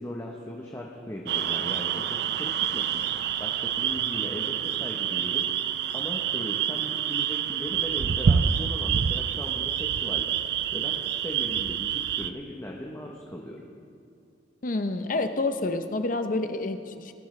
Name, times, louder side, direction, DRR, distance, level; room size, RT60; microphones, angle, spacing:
voice 1, 0.0-5.6 5.9-13.6, equal, 15° left, -2 dB, 0.9 m, -38 dB
sound 1, 1.3-12.3, right 8 dB, 60° right, 0.4 m, -27 dB
voice 2, 14.6-17.1, left 2 dB, 45° left, 8 dB, 0.6 m, -28 dB
19.0 x 11.5 x 3.2 m, 2.5 s
head